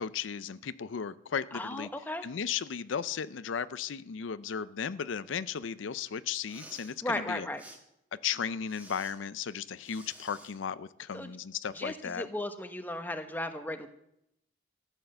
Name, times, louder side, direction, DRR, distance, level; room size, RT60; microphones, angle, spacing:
voice 1, 0.0-1.9 2.2-7.5 8.2-12.3, left 7 dB, 85° left, 15 dB, 0.5 m, -35 dB
voice 2, 1.5-2.2 7.0-7.6 11.1-11.3 11.7-13.9, left 1 dB, 10° left, 7 dB, 1.1 m, -35 dB
Respiratory sounds, 6.3-6.9 7.6-7.8 8.7-9.1 9.8-10.5, right 1 dB, 10° right, 1.8 m, -51 dB
14.5 x 10.0 x 6.7 m, 0.78 s
head